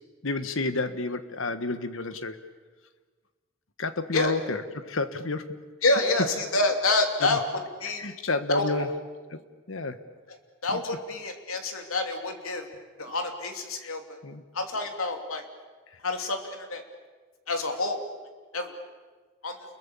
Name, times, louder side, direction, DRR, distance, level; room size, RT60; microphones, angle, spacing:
voice 1, 0.2-2.4 3.8-5.6 7.2-7.4 8.0-8.9 9.3-9.4 9.7-10.0 10.7-10.8 13.8-13.9 14.2-14.4, left 3 dB, 70° left, 10 dB, 1.4 m, -30 dB
voice 2, 5.8-8.0 8.5-8.9 10.3-10.4 10.6-12.7 13.0-14.0 14.5-15.4 16.0-16.8 17.5-18.0 18.5-18.8 19.4-19.6, left 2 dB, 85° left, 4 dB, 2.9 m, -27 dB
29.0 x 22.0 x 7.0 m, 1.4 s
head